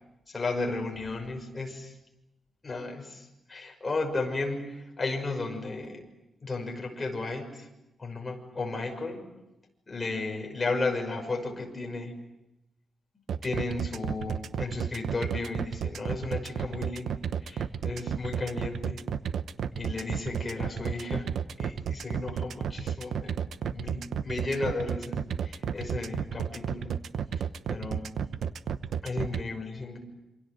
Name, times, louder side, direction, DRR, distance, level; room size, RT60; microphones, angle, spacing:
voice 1, 0.3-1.9 2.6-6.0 6.4-7.7 8.0-9.3 9.9-12.1 13.4-19.0 19.7-21.3 21.6-23.4 23.7-26.9 27.7-28.1 29.0-30.0, left 3 dB, 25° left, 2 dB, 5.9 m, -34 dB
sound 1, 13.3-29.4, right 7 dB, 85° right, 0.9 m, -32 dB
27.5 x 26.5 x 7.8 m, 0.93 s
wide cardioid pair, 150°, 0 cm